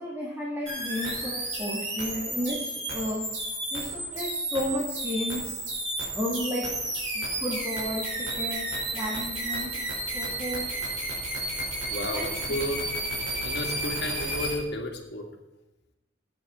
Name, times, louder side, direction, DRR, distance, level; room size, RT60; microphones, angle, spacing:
voice 1, 0.0-3.3 3.7-5.6 6.1-6.6 7.1-8.7 8.9-9.7 10.1-10.7 12.1-12.6, equal, 10° right, -5 dB, 2.1 m, -33 dB
sound 1, 0.7-14.6, right 1 dB, 80° right, 5.3 m, -32 dB
voice 2, 11.9-13.0 13.4-15.3, left 1 dB, 55° left, 0 dB, 2.5 m, -33 dB
16.5 x 9.9 x 4.4 m, 0.92 s
head